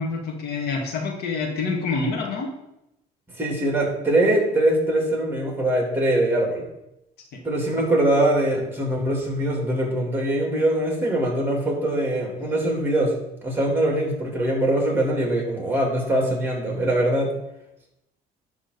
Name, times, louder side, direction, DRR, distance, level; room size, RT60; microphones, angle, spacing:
voice 1, 0.0-2.5, left 4 dB, 70° left, 1 dB, 1.9 m, -27 dB
voice 2, 3.4-6.6 7.4-13.1 13.4-17.3, right 1 dB, 10° right, -1 dB, 3.1 m, -22 dB
11.0 x 3.8 x 6.8 m, 0.85 s
cardioid pair, 110°, 17 cm